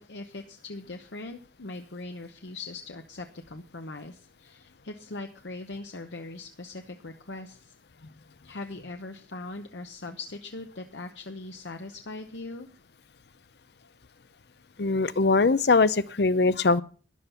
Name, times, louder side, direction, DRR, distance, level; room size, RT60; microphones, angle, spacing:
voice 1, 0.0-7.7 8.4-12.7, left 2 dB, 75° left, 1.0 m, -40 dB
voice 2, 14.8-16.8, left 3 dB, 60° left, 0.6 m, -22 dB
13.0 x 11.0 x 5.6 m
head